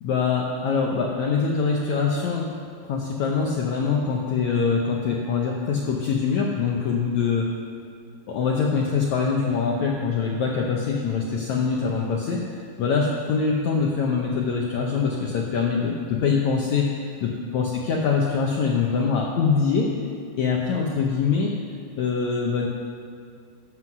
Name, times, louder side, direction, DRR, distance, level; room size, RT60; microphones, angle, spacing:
voice 1, 0.0-2.5 2.9-7.5 8.3-16.9 17.2-19.9 20.4-21.5 22.0-22.7, left 5 dB, 90° left, -1 dB, 1.6 m, -24 dB
13.5 x 7.7 x 6.1 m, 2.3 s
omnidirectional pair, 4.6 m